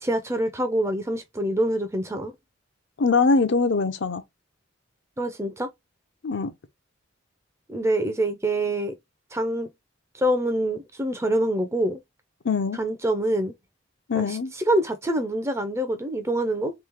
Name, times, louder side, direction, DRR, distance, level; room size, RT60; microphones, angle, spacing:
voice 1, 0.0-2.3 5.2-5.7 7.7-8.9 9.3-9.7 10.1-12.0 12.8-13.5 14.1-14.4 14.7-16.7, right 1 dB, 15° right, 0.5 m, -25 dB
voice 2, 3.0-4.2 6.2-6.5 12.4-12.8 14.1-14.5, left 4 dB, 55° left, 0.6 m, -22 dB
3.2 x 3.1 x 3.5 m
head